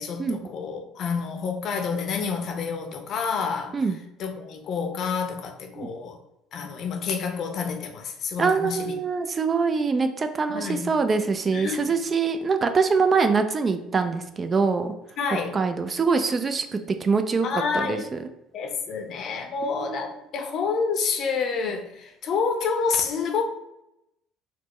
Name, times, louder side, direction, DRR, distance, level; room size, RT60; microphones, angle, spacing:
voice 1, 0.0-3.8 4.2-6.2 6.5-9.0 10.5-10.9 11.5-12.0 15.2-15.6 16.7-16.8 17.4-18.1 18.5-23.4, left 5 dB, 55° left, 4 dB, 0.6 m, -28 dB
voice 2, 8.4-14.9 15.5-18.2 19.6-20.0, right 4 dB, 35° right, 8 dB, 0.4 m, -24 dB
4.1 x 2.0 x 3.0 m, 0.88 s
hypercardioid pair, 70°, 0 cm